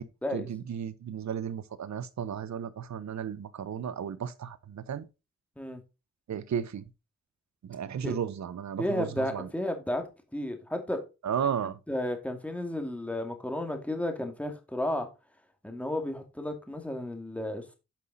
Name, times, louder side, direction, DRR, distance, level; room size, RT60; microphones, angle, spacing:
voice 1, 0.3-5.0 6.3-6.8 7.6-9.5 11.2-11.8, right 8 dB, 70° right, 0.9 m, -34 dB
voice 2, 8.8-10.1 10.3-11.0 11.9-15.1 15.6-17.7, left 1 dB, 5° left, 2.3 m, -33 dB
9.1 x 5.6 x 4.0 m
cardioid pair, 65°, 29 cm